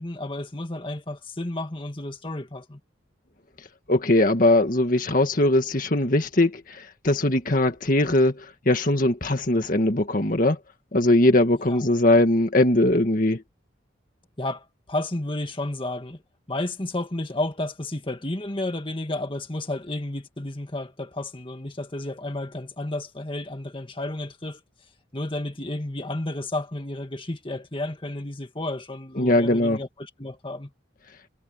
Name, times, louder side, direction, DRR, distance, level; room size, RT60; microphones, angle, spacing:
voice 1, 0.0-2.8 11.7-11.9 14.4-16.2 16.5-24.6 25.1-30.7, left 1 dB, 30° left, 2.0 m, -32 dB
voice 2, 3.9-10.6 10.9-13.4 29.2-29.8, left 1 dB, 45° left, 1.8 m, -20 dB
head